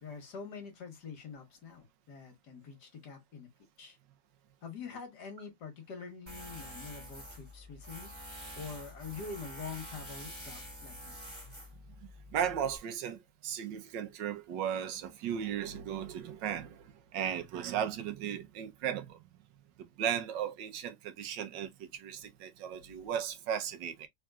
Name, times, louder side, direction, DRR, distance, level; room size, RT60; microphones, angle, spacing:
voice 1, 0.0-3.5 3.8-4.0 4.6-8.1 8.6-11.2, left 5 dB, 70° left, 1.8 m, -45 dB
Tools, 6.3-12.8, equal, 10° right, 2.4 m, -47 dB
voice 2, 12.3-19.4 19.8-24.1, right 9 dB, 85° right, 1.5 m, -36 dB
3.8 x 3.7 x 2.3 m
omnidirectional pair, 1.9 m